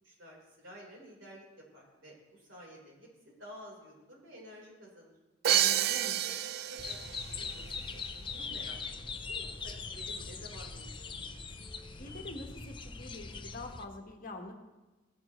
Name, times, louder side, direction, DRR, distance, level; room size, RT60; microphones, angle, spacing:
voice 1, 0.0-1.4 1.7-3.1 3.4-5.1 6.2-6.3 6.6-11.4, equal, 65° right, -2 dB, 3.9 m, -52 dB
Crash cymbal, 5.4-7.3, right 11 dB, 50° right, 0.3 m, -29 dB
voice 2, 5.5-6.2 12.0-14.5, left 2 dB, 45° left, 3 dB, 1.3 m, -45 dB
sound 1, 6.8-13.8, left 4 dB, 25° left, 0.6 m, -41 dB
16.5 x 10.5 x 3.1 m, 1.2 s
head